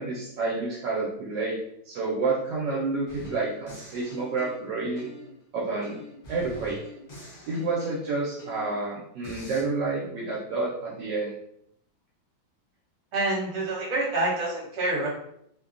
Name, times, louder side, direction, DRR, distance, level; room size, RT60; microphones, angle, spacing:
voice 1, 0.0-1.6 1.8-5.1 5.5-6.0 6.3-6.8 7.5-11.3, right 3 dB, 75° right, -4 dB, 1.2 m, -29 dB
sound 1, 3.1-5.4 5.8-8.8 9.2-9.6, left 3 dB, 70° left, 0.5 m, -45 dB
voice 2, 13.1-15.1, right 2 dB, 45° right, -5 dB, 1.1 m, -27 dB
3.0 x 2.1 x 2.4 m, 0.72 s
omnidirectional pair, 2.1 m